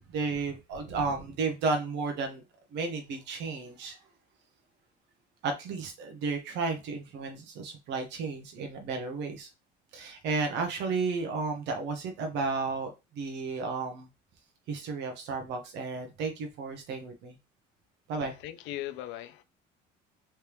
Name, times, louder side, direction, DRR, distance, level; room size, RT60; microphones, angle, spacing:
voice 1, 0.1-2.4 2.7-4.0 5.4-9.5 9.9-14.1 14.7-17.4 18.1-18.3, right 4 dB, 70° right, 1.0 m, -33 dB
voice 2, 18.2-19.4, left 13 dB, 80° left, 0.6 m, -39 dB
3.3 x 3.0 x 3.4 m
cardioid pair, 130°, 18 cm